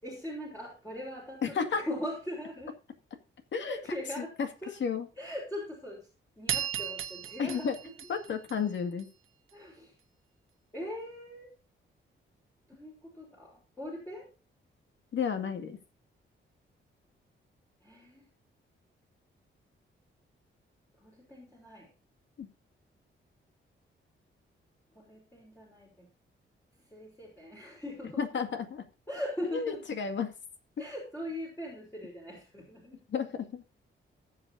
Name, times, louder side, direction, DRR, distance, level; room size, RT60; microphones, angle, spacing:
voice 1, 0.0-2.7 3.7-4.3 4.6-4.7 5.2-6.1 6.4-7.9 9.5-9.9 10.7-11.5 12.7-14.3 17.8-18.3 21.0-21.9 24.9-26.1 26.9-28.2 29.1-29.8 30.8-33.0, left 1 dB, 10° left, -4 dB, 4.1 m, -40 dB
voice 2, 1.4-1.8 3.5-3.8 4.2-4.5 4.8-5.1 7.4-7.8 8.1-9.1 15.1-15.8 22.4-22.5 28.2-28.8 29.5-30.3 33.1-33.6, left 6 dB, 65° left, 7 dB, 2.1 m, -32 dB
sound 1, 6.5-9.0, right 9 dB, 85° right, 1.4 m, -36 dB
18.5 x 7.7 x 2.7 m, 0.32 s
wide cardioid pair, 145°, 21 cm